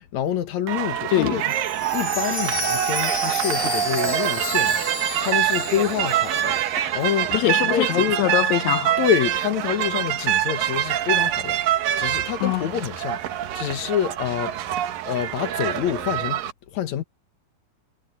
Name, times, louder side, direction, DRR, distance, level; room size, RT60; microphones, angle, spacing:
voice 1, 0.0-1.4 1.7-7.3 7.7-8.3 9.0-14.6 15.1-16.4 16.7-17.0, left 10 dB, 60° left, 2.5 m, -27 dB
sound 1, 0.7-16.5, right 11 dB, 75° right, 3.0 m, -25 dB
voice 2, 1.1-1.4 7.3-7.9 8.2-9.0 12.4-12.6, left 17 dB, 90° left, 1.6 m, -22 dB
Chime, 1.4-7.4 7.7-7.8 8.4-8.5, left 2 dB, 20° left, 1.3 m, -32 dB
omnidirectional pair, 4.0 m